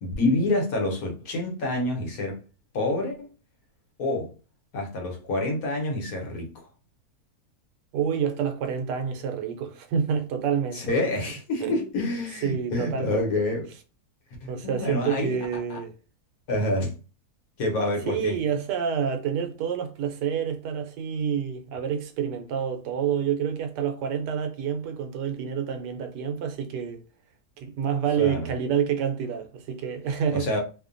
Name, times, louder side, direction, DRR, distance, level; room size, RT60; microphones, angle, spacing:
voice 1, 0.0-2.4 2.7-3.3 4.0-4.3 4.7-6.5 10.7-13.7 14.4-15.4 15.7-15.8 16.5-16.9 17.6-18.4 28.2-28.5 30.3-30.6, left 2 dB, 65° left, 1.1 m, -27 dB
voice 2, 7.9-10.8 11.6-11.9 12.4-13.4 14.5-15.9 18.1-27.0 27.6-30.5, right 8 dB, 85° right, 1.2 m, -28 dB
2.8 x 2.1 x 2.4 m
omnidirectional pair, 1.8 m